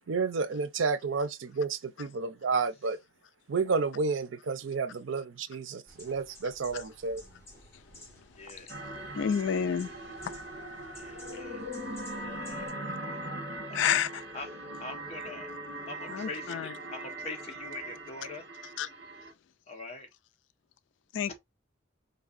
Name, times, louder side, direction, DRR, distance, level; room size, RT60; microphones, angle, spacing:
voice 1, 0.1-3.0 3.5-7.2, right 4 dB, 90° right, 0.5 m, -31 dB
sound 1, 5.9-12.7, left 1 dB, 15° left, 1.6 m, -53 dB
voice 2, 8.4-8.8 10.9-11.7 12.4-12.7 13.7-14.0 14.3-14.5 14.8-15.5 15.9-18.5 19.7-20.1, left 3 dB, 35° left, 0.9 m, -43 dB
sound 2, 8.7-19.3, right 1 dB, 60° right, 1.3 m, -40 dB
voice 3, 9.2-9.9 10.2-10.4 13.7-14.2 16.1-16.7 18.8-18.9 21.1-21.4, left 8 dB, 75° left, 0.3 m, -30 dB
3.9 x 2.7 x 2.5 m
head